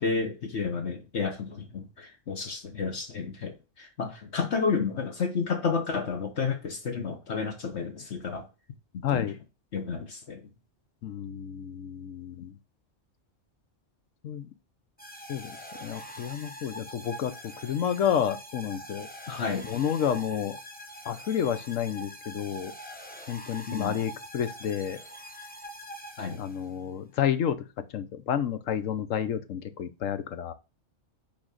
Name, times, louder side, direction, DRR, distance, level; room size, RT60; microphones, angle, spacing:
voice 1, 0.0-8.5 8.9-9.3 9.7-10.4 19.3-19.7 23.7-24.0 26.2-26.4, left 5 dB, 60° left, 1.3 m, -31 dB
voice 2, 9.0-9.4 11.0-12.5 14.2-14.5 15.3-17.3 17.6-19.1 19.6-20.6 21.0-22.7 23.3-25.0 26.4-27.6 27.9-30.5, left 9 dB, 90° left, 1.2 m, -30 dB
sound 1, 15.0-26.8, equal, 10° left, 0.9 m, -44 dB
6.1 x 4.3 x 6.4 m
omnidirectional pair, 1.3 m